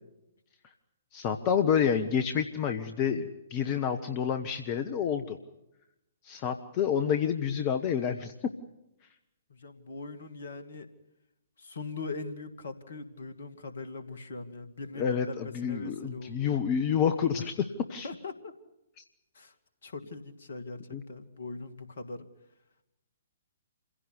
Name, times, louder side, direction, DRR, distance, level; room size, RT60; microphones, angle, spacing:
voice 1, 1.1-5.4 6.2-8.3 15.0-18.1 20.9-21.0, left 7 dB, 30° left, 8 dB, 1.4 m, -28 dB
voice 2, 9.5-10.9 11.6-16.6 18.0-18.5 19.3-19.5 19.8-22.3, left 3 dB, 60° left, 10 dB, 2.5 m, -41 dB
28.0 x 16.5 x 9.7 m, 0.90 s
figure-of-eight pair, 120°, 0 cm